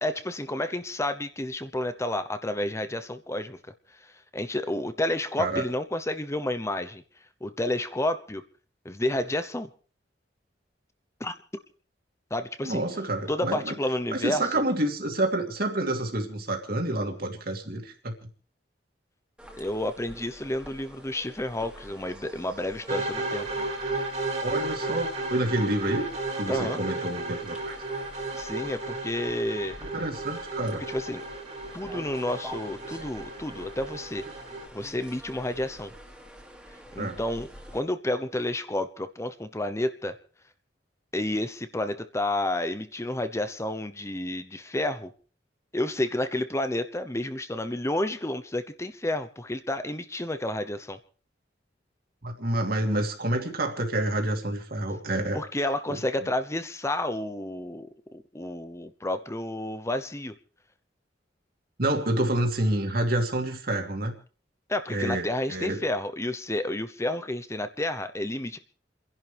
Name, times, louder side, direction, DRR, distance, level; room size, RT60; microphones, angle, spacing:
voice 1, 0.0-3.6 4.3-7.0 7.4-8.4 8.8-9.7 11.2-11.3 12.3-12.8 13.3-14.4 19.6-23.5 26.5-26.8 28.4-29.8 30.9-31.2 31.7-34.2 34.7-35.9 36.9-40.2 41.1-45.1 45.7-51.0 55.3-60.3 64.7-68.6, left 1 dB, 15° left, 11 dB, 0.9 m, -30 dB
voice 2, 12.6-13.7 14.1-18.2 24.4-26.1 26.4-27.8 29.9-30.8 37.0-37.2 52.2-55.4 55.9-56.0 61.8-64.1 64.9-65.8, right 1 dB, 55° right, 3 dB, 2.8 m, -28 dB
sound 1, 19.4-37.8, equal, 5° right, 2.4 m, -47 dB
sound 2, 22.9-34.7, right 2 dB, 40° right, 2.8 m, -33 dB
30.0 x 11.0 x 3.5 m, 0.41 s
head